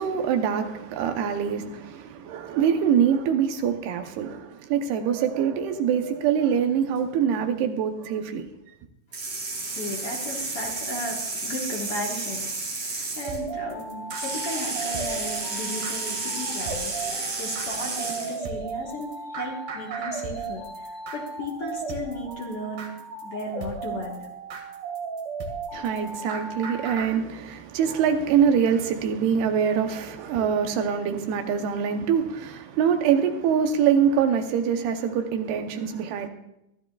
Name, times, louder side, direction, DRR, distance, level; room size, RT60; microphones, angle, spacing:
voice 1, 0.0-8.5 25.7-36.3, right 7 dB, 85° right, 3.0 m, -24 dB
voice 2, 9.1-22.9 23.2-24.3, left 1 dB, 50° left, 2.0 m, -35 dB
sound 1, 9.1-13.4 14.1-18.4, right 3 dB, 35° right, 3.4 m, -32 dB
sound 2, 13.2-27.1, right 4 dB, 65° right, 3.5 m, -35 dB
23.5 x 13.5 x 2.4 m
omnidirectional pair, 4.5 m